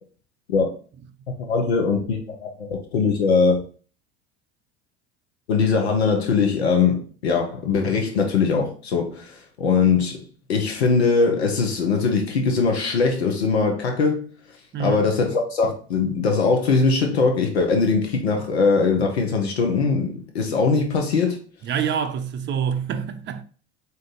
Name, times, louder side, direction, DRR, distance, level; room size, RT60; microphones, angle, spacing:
voice 1, 1.4-3.6 5.5-10.2 10.5-14.2 14.8-21.4, left 4 dB, 90° left, 0.7 m, -21 dB
voice 2, 21.6-23.4, right 7 dB, 35° right, 0.6 m, -26 dB
3.7 x 2.7 x 3.6 m
hypercardioid pair, 75°, 31 cm